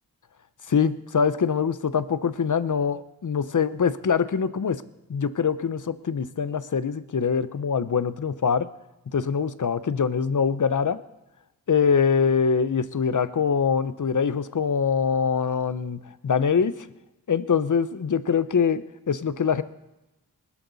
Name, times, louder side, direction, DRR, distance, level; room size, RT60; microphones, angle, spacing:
voice 1, 0.7-4.8 5.1-8.7 9.1-11.0 11.7-16.9 17.3-19.6, left 6 dB, 55° left, 14 dB, 0.8 m, -24 dB
20.5 x 12.0 x 4.1 m, 0.98 s
wide cardioid pair, 60°, 38 cm